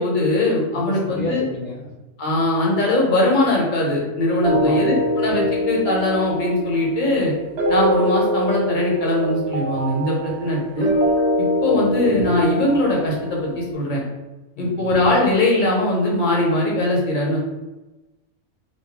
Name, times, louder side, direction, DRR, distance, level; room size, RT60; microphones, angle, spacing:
voice 1, 0.0-1.4 2.2-7.3 7.7-10.9 11.4-14.0 14.6-17.4, left 1 dB, 35° left, -2 dB, 1.1 m, -20 dB
voice 2, 0.7-1.9 4.5-5.2 11.7-11.9 14.5-14.9, left 3 dB, 65° left, -2 dB, 0.9 m, -31 dB
sound 1, 4.4-13.6, equal, 50° right, 1.1 m, -23 dB
4.5 x 2.7 x 3.6 m, 1.1 s
omnidirectional pair, 1.5 m